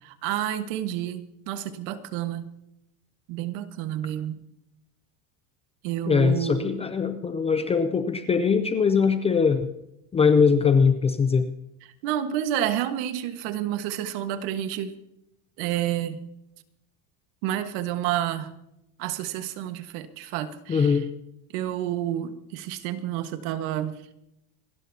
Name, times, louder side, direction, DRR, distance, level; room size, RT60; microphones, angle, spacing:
voice 1, 0.0-2.5 3.3-4.4 5.8-6.8 12.0-14.9 15.6-16.2 17.4-18.5 19.0-21.0 21.5-24.0, right 11 dB, 60° right, 9 dB, 1.6 m, -29 dB
voice 2, 6.1-9.7 10.1-11.5 20.7-21.1, left 5 dB, 15° left, 9 dB, 0.4 m, -21 dB
27.0 x 12.5 x 2.8 m, 0.82 s
cardioid pair, 160°, 47 cm